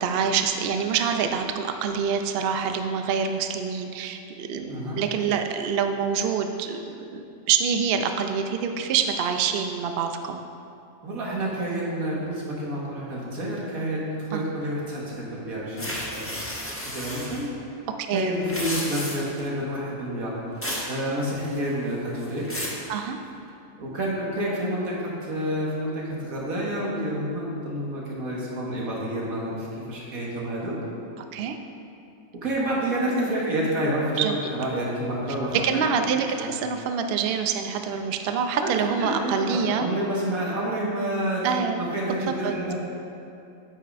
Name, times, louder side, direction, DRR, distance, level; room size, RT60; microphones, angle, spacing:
voice 1, 0.0-10.4 14.3-14.5 18.1-18.3 22.9-23.2 31.2-31.6 34.2-34.4 35.5-39.9 41.4-41.8 42.4-42.5, right 6 dB, 65° right, 6 dB, 0.6 m, -26 dB
voice 2, 4.7-5.0 11.0-16.2 16.8-17.5 18.1-22.4 23.8-24.9 25.2-30.8 32.4-35.8 36.4-36.5 38.6-38.7 39.0-41.4 41.7-42.7, right 1 dB, 80° right, -5 dB, 2.0 m, -29 dB
sound 1, 15.8-17.4 18.4-19.4 20.6-20.9 21.3-21.7 22.2-22.8, equal, 10° left, 1.0 m, -33 dB
9.4 x 8.6 x 2.5 m, 2.6 s
omnidirectional pair, 1.5 m